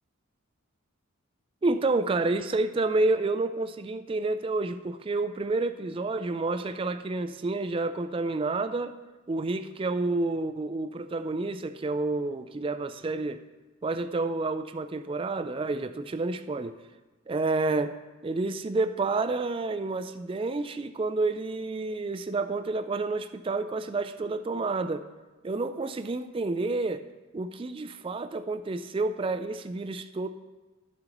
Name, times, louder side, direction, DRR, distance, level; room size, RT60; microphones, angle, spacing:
voice 1, 1.6-9.0 9.3-13.4 13.8-16.7 17.3-25.0 25.4-27.0 27.3-30.3, right 3 dB, 25° right, 9 dB, 0.3 m, -29 dB
13.5 x 7.6 x 3.0 m, 1.2 s
head